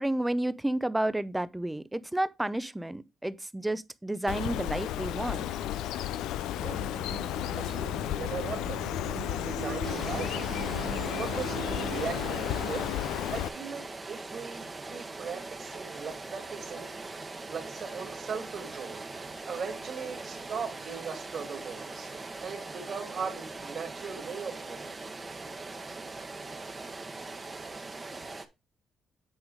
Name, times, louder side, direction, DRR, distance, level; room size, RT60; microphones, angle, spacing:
voice 1, 0.0-5.4, right 1 dB, 10° right, 0.6 m, -31 dB
Bird, 4.3-13.5, left 12 dB, 90° left, 0.4 m, -33 dB
sound 1, 6.5-12.9, right 8 dB, 85° right, 0.7 m, -41 dB
voice 2, 7.5-8.8 9.3-10.3 11.1-12.9 13.3-16.9 17.5-19.0 19.4-22.1 22.4-25.0, right 6 dB, 55° right, 2.7 m, -39 dB
sound 2, 9.8-28.5, right 3 dB, 25° right, 1.1 m, -41 dB
8.9 x 3.6 x 4.9 m
cardioid pair, 90°, 0 cm